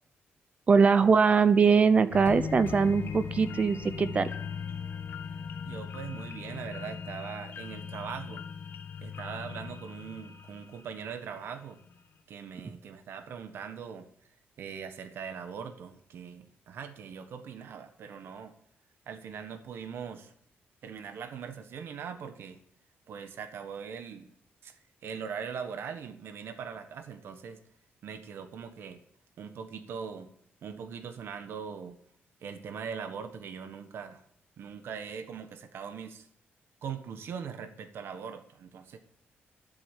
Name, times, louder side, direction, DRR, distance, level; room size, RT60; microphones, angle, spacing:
voice 1, 0.7-4.3, right 5 dB, 35° right, 13 dB, 0.7 m, -22 dB
sound 1, 2.1-11.5 11.9-12.0, left 6 dB, 60° left, 1.3 m, -39 dB
voice 2, 5.6-8.4 9.0-11.8 12.3-14.1 14.6-18.5 19.1-20.3 20.8-22.6 23.1-24.3 24.6-27.6 28.0-29.0 29.4-30.3 30.6-32.0 32.4-34.2 34.6-36.3 36.8-39.0, right 7 dB, 70° right, 8 dB, 1.4 m, -41 dB
11.5 x 8.2 x 8.3 m, 0.64 s
cardioid pair, 140°, 4 cm